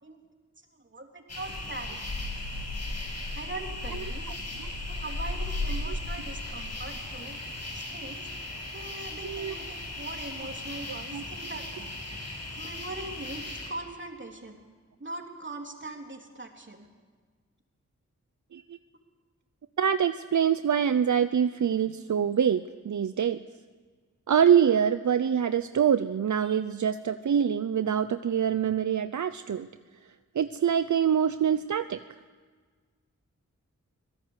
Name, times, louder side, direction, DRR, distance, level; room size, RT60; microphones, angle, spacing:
voice 1, 0.7-2.0 3.3-4.3 5.0-7.4 7.7-8.3 8.7-12.0 12.5-14.6 15.0-16.9, right 2 dB, 40° right, 2 dB, 3.5 m, -41 dB
sound 1, 1.3-13.7, left 2 dB, 60° left, 7.2 m, -36 dB
voice 2, 9.2-9.5 11.1-11.2 18.5-18.8 19.8-23.4 24.3-29.7 30.3-32.0, right 8 dB, 75° right, 11 dB, 0.7 m, -25 dB
25.5 x 17.5 x 8.2 m, 1.5 s
wide cardioid pair, 70°, 30 cm